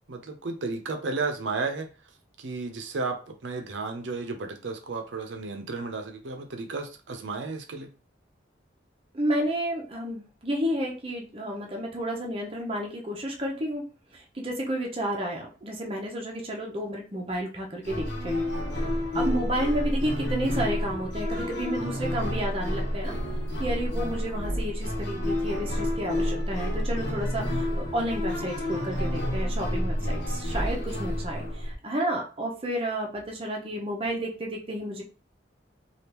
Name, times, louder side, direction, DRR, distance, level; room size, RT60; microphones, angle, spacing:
voice 1, 0.1-1.9 2.4-7.9, right 3 dB, 75° right, 5 dB, 0.6 m, -33 dB
voice 2, 9.1-13.8 14.1-18.4 19.1-23.1 23.6-35.0, right 1 dB, 30° right, 0 dB, 0.7 m, -31 dB
sound 1, 17.8-31.7, left 1 dB, 65° left, 1.1 m, -29 dB
3.4 x 2.4 x 2.9 m, 0.35 s
head